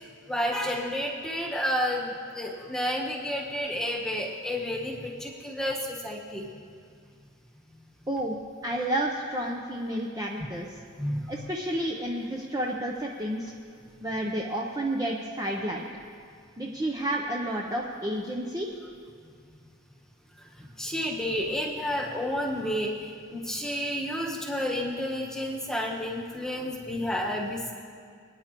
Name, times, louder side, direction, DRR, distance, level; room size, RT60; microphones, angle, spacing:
voice 1, 0.3-6.5 11.0-11.4 20.6-27.7, equal, ahead, -1 dB, 1.3 m, -31 dB
voice 2, 8.1-8.4 8.6-10.7 11.3-13.5 14.0-15.9 16.6-18.7, right 1 dB, 15° right, -1 dB, 0.6 m, -30 dB
25.5 x 9.9 x 3.0 m, 2.2 s
head